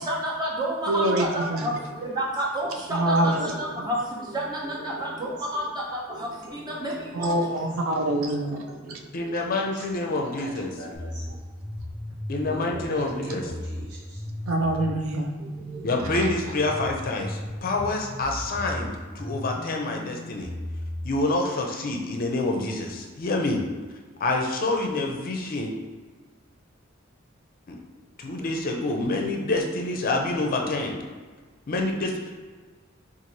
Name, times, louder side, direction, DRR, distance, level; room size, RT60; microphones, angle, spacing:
voice 1, 0.0-7.3, right 1 dB, 20° right, -3 dB, 0.6 m, -30 dB
voice 2, 0.9-1.7 2.9-3.5 7.1-9.0 14.5-15.3, right 1 dB, 85° right, 3 dB, 0.5 m, -25 dB
voice 3, 1.4-2.2 2.6-3.9 4.2-5.7 6.1-7.6 7.9-11.4 12.5-14.2 15.4-16.4, right 1 dB, 55° right, -7 dB, 1.1 m, -42 dB
voice 4, 9.1-10.7 12.3-13.4 15.8-20.5 21.0-23.6 24.2-25.7 27.7-27.8 28.2-31.0 31.7-32.3, left 2 dB, 45° left, 2 dB, 0.5 m, -27 dB
sound 1, 10.9-21.1, left 1 dB, 5° left, 1.1 m, -36 dB
3.1 x 2.5 x 3.9 m, 1.4 s
head